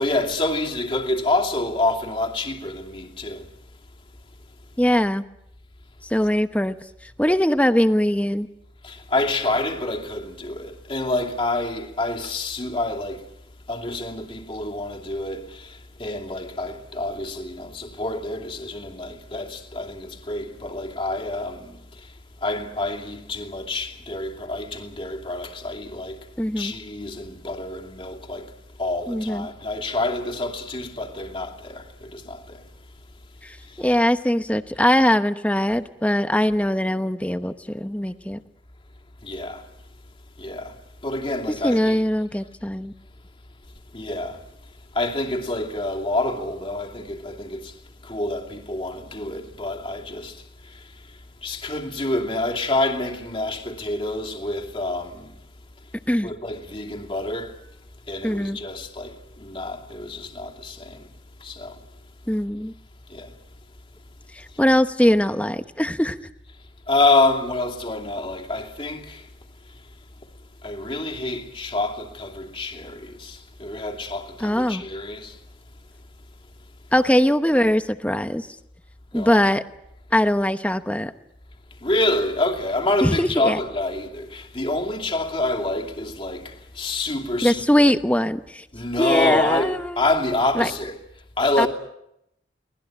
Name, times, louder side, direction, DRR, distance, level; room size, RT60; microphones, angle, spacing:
voice 1, 0.0-3.5 8.8-13.3 13.7-22.1 22.4-26.3 26.6-28.5 28.8-32.6 33.6-33.8 39.2-39.7 40.4-40.8 41.0-42.0 43.9-44.4 44.9-47.8 48.0-55.3 56.2-57.6 58.1-61.1 61.4-61.8 63.1-63.3 66.9-69.3 70.6-75.4 79.1-79.5 81.8-87.6 88.7-91.0 91.4-91.7, left 2 dB, 30° left, 2.7 m, -27 dB
voice 2, 4.8-5.2 6.0-6.7 7.2-8.5 26.4-26.7 29.1-29.5 33.4-38.4 41.6-42.9 56.1-56.3 58.2-58.6 62.3-62.7 64.3-66.2 74.4-74.8 76.9-78.5 79.1-79.6 80.1-81.1 83.0-83.6 87.4-88.6 89.0-90.0 90.5-90.7 91.6-91.7, equal, 5° left, 0.9 m, -21 dB
24.0 x 19.0 x 8.9 m
head